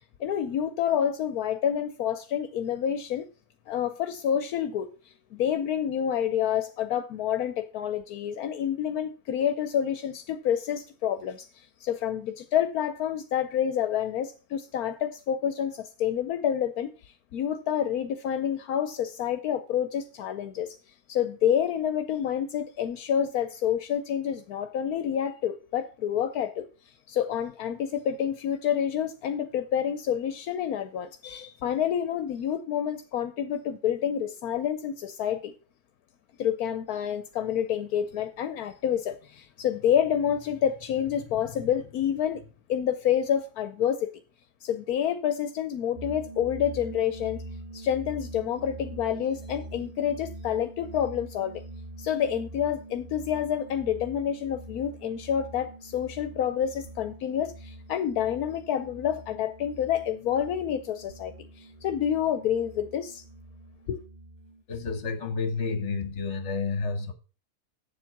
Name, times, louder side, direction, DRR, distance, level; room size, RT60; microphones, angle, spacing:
voice 1, 0.2-3.3 3.7-4.9 5.3-16.9 17.3-20.8 21.1-26.7 27.1-35.5 36.4-42.4 42.7-44.1 44.6-47.4 47.7-51.6 52.0-63.2 63.9-64.0, left 9 dB, 80° left, 1.2 m, -28 dB
sound 1, 46.0-64.6, right 1 dB, 35° right, 1.0 m, -44 dB
voice 2, 64.7-67.1, left 4 dB, 50° left, 1.6 m, -30 dB
8.4 x 7.3 x 5.8 m
omnidirectional pair, 1.6 m